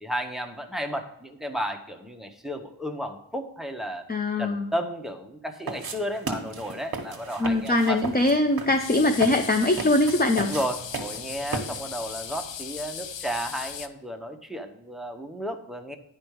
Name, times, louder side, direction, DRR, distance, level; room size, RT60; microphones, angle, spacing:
voice 1, 0.0-4.0 4.4-8.0 10.4-16.0, equal, ahead, 6 dB, 0.9 m, -33 dB
voice 2, 4.1-4.7 7.4-10.5, left 2 dB, 20° left, 6 dB, 0.5 m, -22 dB
sound 1, 5.7-12.0, right 4 dB, 50° right, 1.3 m, -36 dB
sound 2, 8.8-13.9, left 8 dB, 65° left, 0.6 m, -38 dB
10.0 x 5.2 x 4.6 m, 0.82 s
wide cardioid pair, 115°, 48 cm